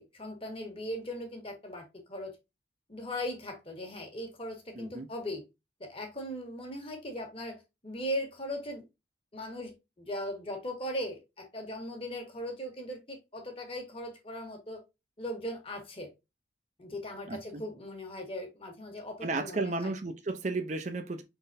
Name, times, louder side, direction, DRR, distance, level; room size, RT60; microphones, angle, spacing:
voice 1, 0.0-2.4 2.9-5.4 5.8-8.8 9.3-14.8 15.2-16.1 16.8-19.9, equal, 30° left, 1.4 m, -39 dB
voice 2, 4.8-5.1 17.3-17.6 19.2-21.2, right 3 dB, 40° right, 0.5 m, -33 dB
5.1 x 3.9 x 2.6 m
head